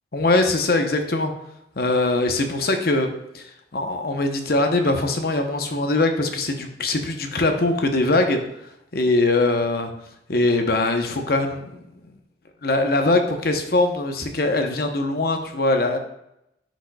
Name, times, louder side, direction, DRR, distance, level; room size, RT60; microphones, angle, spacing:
voice 1, 0.1-1.3 1.8-8.4 8.9-9.9 10.3-11.8 12.6-16.0, left 2 dB, 50° left, 5 dB, 0.8 m, -22 dB
10.0 x 5.1 x 2.3 m, 0.83 s
head